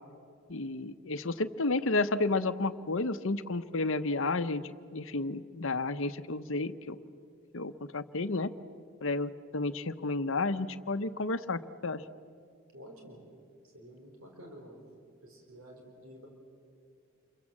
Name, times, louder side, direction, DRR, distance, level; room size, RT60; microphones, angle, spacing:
voice 1, 0.5-4.6 4.9-7.0 7.5-8.5 9.0-12.0, left 3 dB, 60° left, 12 dB, 0.9 m, -31 dB
voice 2, 12.7-13.2 13.7-14.8 15.2-16.3, equal, 70° right, 1 dB, 4.4 m, -50 dB
28.0 x 23.0 x 7.4 m, 2.5 s
head